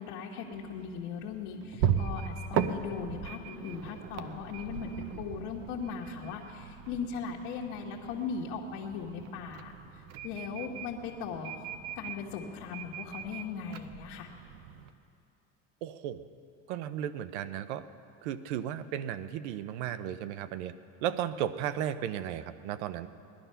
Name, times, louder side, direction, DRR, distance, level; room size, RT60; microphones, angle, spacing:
voice 1, 0.0-9.7 10.2-11.5 11.9-14.3, left 6 dB, 65° left, -4 dB, 1.5 m, -38 dB
sound 1, 0.5-14.9, right 8 dB, 50° right, 0.7 m, -38 dB
voice 2, 15.8-16.3 16.7-17.8 18.2-20.7 21.0-23.1, right 10 dB, 85° right, 14 dB, 0.7 m, -35 dB
19.0 x 11.5 x 5.7 m, 2.6 s
cardioid pair, 145°, 33 cm